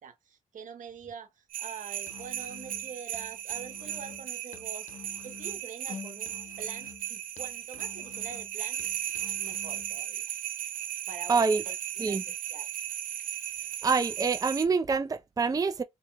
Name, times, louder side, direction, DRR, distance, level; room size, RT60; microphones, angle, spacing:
voice 1, 0.0-4.9 5.2-8.9 9.4-10.2 11.1-12.7, right 6 dB, 70° right, 1.0 m, -45 dB
sound 1, 1.5-14.7, right 11 dB, 85° right, 0.6 m, -36 dB
Musical instrument, 2.0-10.0, left 5 dB, 65° left, 0.7 m, -48 dB
voice 2, 11.3-11.6 12.0-12.2 13.8-15.8, right 4 dB, 25° right, 0.5 m, -26 dB
4.3 x 3.0 x 2.2 m
supercardioid pair, 55°, 14 cm